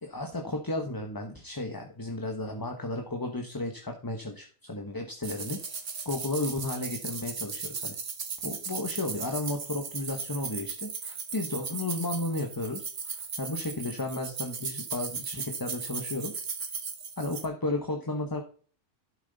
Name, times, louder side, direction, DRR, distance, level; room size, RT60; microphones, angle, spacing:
voice 1, 0.0-5.6 6.0-7.9 8.4-16.3 17.2-18.4, left 2 dB, 20° left, 3 dB, 1.1 m, -33 dB
sound 1, 5.2-17.5, right 5 dB, 80° right, 1.7 m, -37 dB
12.0 x 7.3 x 4.0 m, 0.42 s
omnidirectional pair, 1.3 m